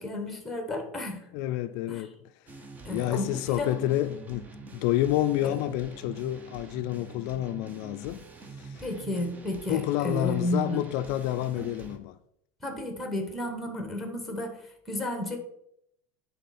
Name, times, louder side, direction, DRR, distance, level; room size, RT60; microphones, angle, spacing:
voice 1, 0.0-1.2 1.9-2.0 2.8-3.9 5.4-5.6 8.8-10.8 11.5-11.6 12.6-15.4, left 1 dB, ahead, 1.3 m, -32 dB
voice 2, 1.3-2.1 2.9-8.3 8.6-8.8 9.7-12.2, left 14 dB, 60° left, 0.4 m, -29 dB
sound 1, 2.5-12.0, right 3 dB, 20° right, 0.8 m, -46 dB
10.0 x 4.1 x 4.3 m
supercardioid pair, 155°, 9 cm